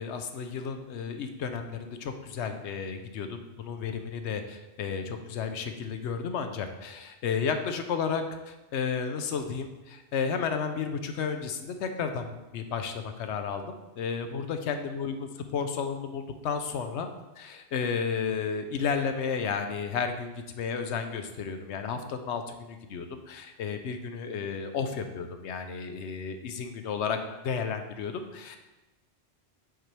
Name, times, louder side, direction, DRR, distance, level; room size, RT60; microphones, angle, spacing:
voice 1, 0.0-17.1 17.4-27.2 27.4-28.6, left 6 dB, 80° left, 7 dB, 0.9 m, -32 dB
8.0 x 4.4 x 3.3 m, 1.0 s
omnidirectional pair, 1.2 m